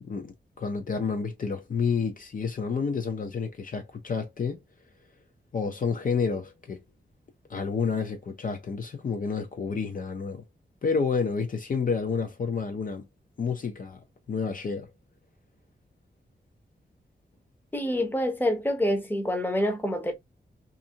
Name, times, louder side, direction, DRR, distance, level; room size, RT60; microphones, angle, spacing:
voice 1, 0.0-4.6 5.5-6.8 7.5-10.4 10.8-13.0 13.4-14.0 14.3-14.9, left 5 dB, 50° left, 0.5 m, -29 dB
voice 2, 17.7-20.1, left 1 dB, 10° left, 0.7 m, -26 dB
2.6 x 2.5 x 2.7 m
wide cardioid pair, 165°, 18 cm